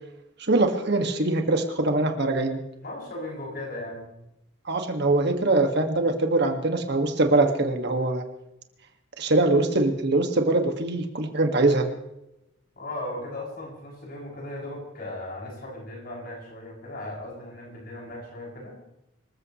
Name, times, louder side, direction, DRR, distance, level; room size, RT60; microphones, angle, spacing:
voice 1, 0.4-2.6 4.7-8.2 9.2-11.8, right 2 dB, 60° right, 5 dB, 2.0 m, -23 dB
voice 2, 2.8-4.1 12.8-18.8, left 1 dB, 50° left, -3 dB, 7.5 m, -37 dB
26.0 x 15.0 x 3.2 m, 0.87 s
head